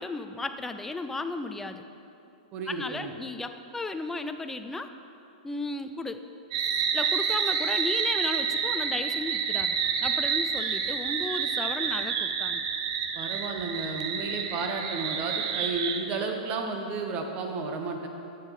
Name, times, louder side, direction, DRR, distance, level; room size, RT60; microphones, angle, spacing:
voice 1, 0.0-1.8 2.7-4.9 5.4-6.2 6.9-12.6, left 3 dB, 10° left, 8 dB, 0.4 m, -34 dB
voice 2, 2.5-3.1 13.1-18.1, right 3 dB, 35° right, 3 dB, 1.2 m, -32 dB
sound 1, 6.5-16.0, right 6 dB, 55° right, 0.7 m, -29 dB
8.3 x 6.8 x 5.6 m, 2.7 s
hypercardioid pair, 115°, 4 cm